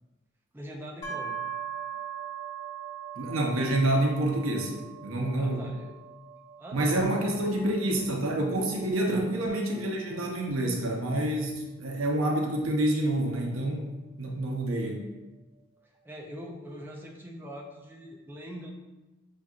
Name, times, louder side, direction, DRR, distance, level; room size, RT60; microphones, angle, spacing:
voice 1, 0.5-1.4 5.4-5.9 6.6-8.2 9.1-9.3 15.8-18.7, equal, 10° right, -1 dB, 0.4 m, -43 dB
sound 1, 1.0-14.7, right 8 dB, 25° left, 1.2 m, -42 dB
voice 2, 3.2-5.7 6.7-13.9 14.2-15.0, right 1 dB, 90° right, 0 dB, 0.8 m, -28 dB
6.4 x 2.7 x 2.4 m, 1.1 s
head